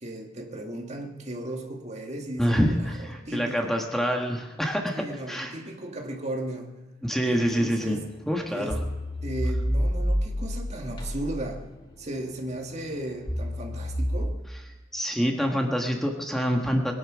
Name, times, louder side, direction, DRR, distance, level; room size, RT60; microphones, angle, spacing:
voice 1, 0.0-3.7 4.9-6.7 7.2-8.1 8.5-8.8 9.2-11.7 12.0-14.4, right 1 dB, 35° right, 2 dB, 2.0 m, -36 dB
voice 2, 2.4-5.5 7.0-8.0 8.3-8.8 14.9-16.9, equal, ahead, 1 dB, 1.5 m, -26 dB
sound 1, 7.8-8.1 8.7-11.6 11.9-14.3, equal, 25° left, 2.1 m, -29 dB
21.5 x 10.5 x 6.3 m, 1.1 s
head